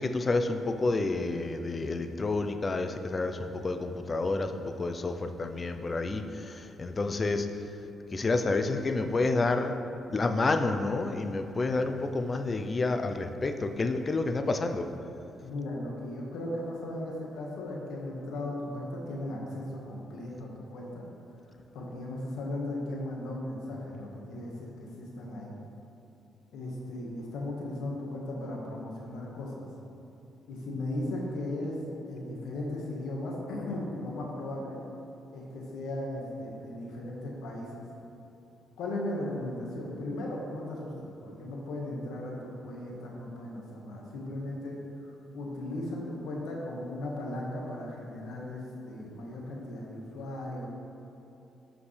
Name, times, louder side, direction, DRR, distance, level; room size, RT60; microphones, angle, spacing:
voice 1, 0.0-7.5 8.1-9.7 10.1-14.9, left 3 dB, 30° left, 7 dB, 0.6 m, -29 dB
voice 2, 15.4-21.0 21.7-25.6 26.5-29.7 30.5-31.8 32.1-34.8 35.3-37.8 38.8-50.7, left 1 dB, 85° left, -2 dB, 1.6 m, -37 dB
13.0 x 5.1 x 3.3 m, 3.0 s
cardioid pair, 90°, 0 cm